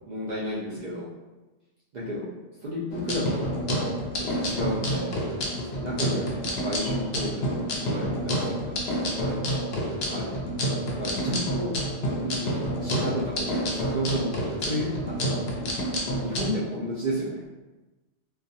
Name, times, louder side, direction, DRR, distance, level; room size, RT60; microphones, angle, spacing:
voice 1, 0.1-1.1 1.9-2.3 2.6-3.5 4.1-5.2 5.7-8.6 9.0-9.4 10.0-10.3 10.9-11.7 12.2-14.3 14.6-15.7 16.2-17.5, equal, 65° right, -8 dB, 0.4 m, -32 dB
sound 1, 2.9-16.5, equal, 65° left, 0.7 m, -29 dB
2.2 x 2.2 x 2.7 m, 1.1 s
omnidirectional pair, 1.3 m